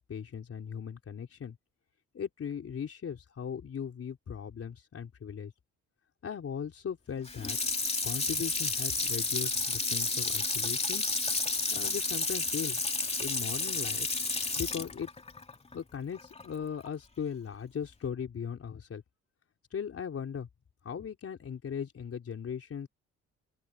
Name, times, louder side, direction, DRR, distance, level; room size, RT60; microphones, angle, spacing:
voice 1, 0.1-1.6 2.1-5.5 6.2-7.6 8.0-11.0 11.7-12.8 13.2-14.1 14.6-15.1 15.7-19.0 19.7-20.5 20.8-22.9, left 7 dB, 50° left, 4.0 m, -38 dB
Water tap faucet / Sink (filling or washing), 7.2-16.5 16.9-17.0, left 3 dB, 20° left, 2.9 m, -31 dB
open air
cardioid pair, 90°, 30 cm